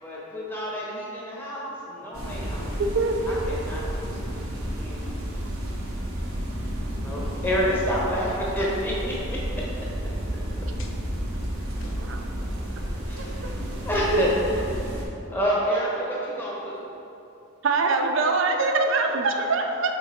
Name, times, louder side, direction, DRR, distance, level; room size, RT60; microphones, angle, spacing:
voice 1, 0.0-2.6 3.3-4.2 4.5-5.0 6.9-9.1 13.1-13.5 13.8-14.4 14.7-14.8 15.3-16.8, equal, 10° left, -6 dB, 1.0 m, -28 dB
voice 2, 1.8-2.8 10.1-11.5 11.8-12.0, left 1 dB, 65° left, 2 dB, 0.6 m, -47 dB
sound 1, 2.1-15.1, equal, 90° right, 1.0 m, -31 dB
voice 3, 2.8-3.2 12.0-12.2 13.2-13.3 14.1-14.3 17.6-20.0, right 3 dB, 65° right, 4 dB, 0.5 m, -23 dB
6.2 x 3.8 x 4.4 m, 2.8 s
head